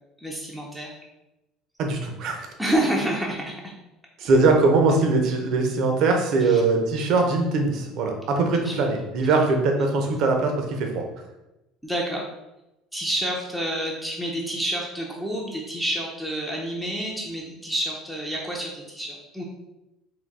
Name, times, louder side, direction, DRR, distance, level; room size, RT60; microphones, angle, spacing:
voice 1, 0.2-1.0 2.6-3.7 6.4-6.6 8.6-8.9 9.3-9.5 9.8-9.9 11.8-12.3 12.9-19.4, right 1 dB, ahead, -3 dB, 0.6 m, -29 dB
voice 2, 1.8-2.5 4.2-11.0, right 3 dB, 55° right, 3 dB, 0.7 m, -21 dB
3.8 x 2.7 x 4.1 m, 0.94 s
cardioid pair, 150°, 0 cm